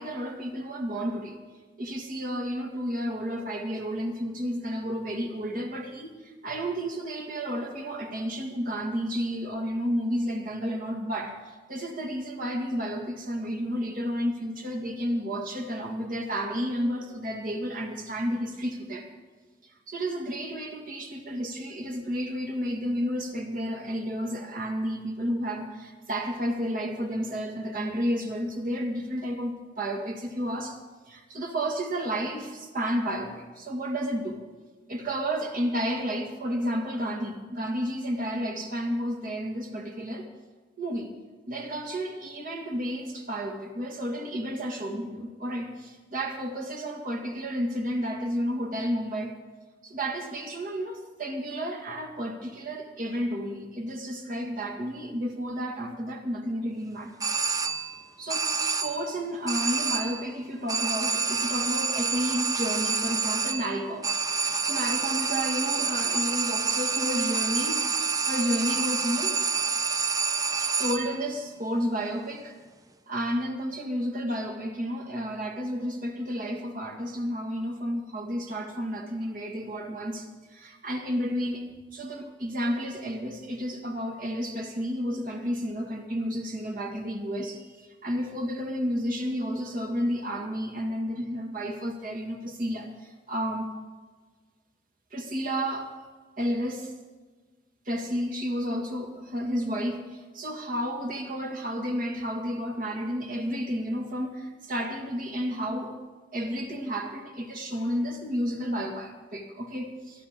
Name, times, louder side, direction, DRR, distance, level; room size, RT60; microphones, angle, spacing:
voice 1, 0.0-1.4 1.8-19.1 19.6-30.8 31.1-34.4 34.9-40.3 40.8-41.1 41.5-49.3 49.8-57.4 58.2-69.4 70.6-72.5 73.1-93.7 95.1-95.9 96.4-96.9 97.9-106.0 106.3-110.3, equal, 50° right, 3 dB, 1.8 m, -31 dB
sound 1, 57.2-58.0 58.3-59.1 59.5-60.3 60.7-71.2, right 5 dB, 20° right, 0.6 m, -28 dB
21.5 x 12.5 x 3.6 m, 1.4 s
head